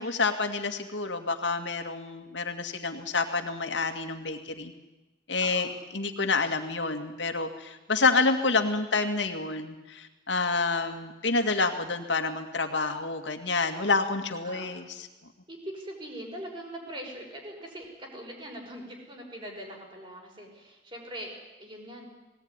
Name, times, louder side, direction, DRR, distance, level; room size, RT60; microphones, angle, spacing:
voice 1, 0.0-4.7 5.3-5.7 5.9-14.8, left 3 dB, 75° left, 6 dB, 2.3 m, -28 dB
voice 2, 5.4-5.8 14.4-14.8 15.5-22.1, right 1 dB, 25° right, 1 dB, 5.6 m, -42 dB
20.5 x 18.5 x 9.9 m, 1.1 s
head